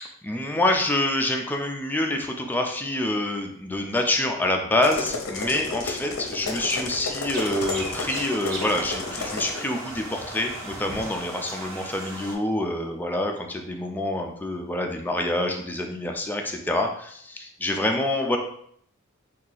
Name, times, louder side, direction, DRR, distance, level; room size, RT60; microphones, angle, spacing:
voice 1, 0.2-18.4, left 1 dB, 10° left, 2 dB, 0.4 m, -26 dB
sound 1, 4.8-9.6, left 3 dB, 70° left, 0.6 m, -32 dB
sound 2, 7.3-12.4, right 1 dB, 75° right, 0.9 m, -36 dB
2.8 x 2.4 x 3.8 m, 0.66 s
head